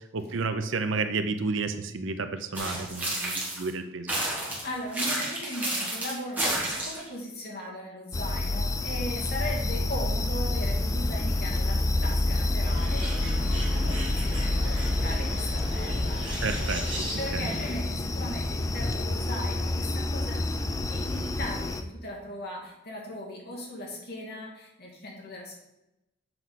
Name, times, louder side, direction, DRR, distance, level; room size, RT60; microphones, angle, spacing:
voice 1, 0.1-4.1 16.4-17.1 17.3-17.4, right 4 dB, 65° right, 9 dB, 0.6 m, -31 dB
sound 1, 2.5-3.7 4.1-7.1, right 1 dB, 10° right, 2.0 m, -30 dB
voice 2, 4.6-16.2 17.2-25.6, left 1 dB, 50° left, -2 dB, 2.4 m, -38 dB
sound 2, 8.1-21.8, left 2 dB, 15° left, 0.3 m, -28 dB
Bird, 12.6-17.7, equal, 25° right, 2.6 m, -37 dB
7.9 x 4.7 x 5.8 m, 0.93 s
head